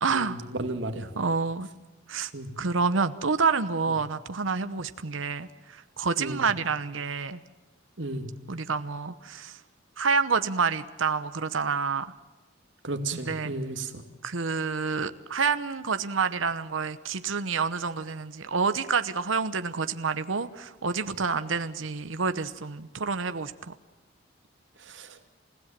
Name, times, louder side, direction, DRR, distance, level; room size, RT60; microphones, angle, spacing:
voice 1, 0.0-0.4 1.2-1.7 2.1-2.3 2.6-7.4 8.5-9.6 10.0-12.1 13.2-13.5 14.2-23.7, right 5 dB, 90° right, 11 dB, 0.9 m, -28 dB
voice 2, 0.6-1.1 2.3-2.5 6.2-6.4 8.0-8.2 12.8-13.9, right 2 dB, 75° right, 7 dB, 2.5 m, -32 dB
29.0 x 16.5 x 7.5 m, 1.2 s
head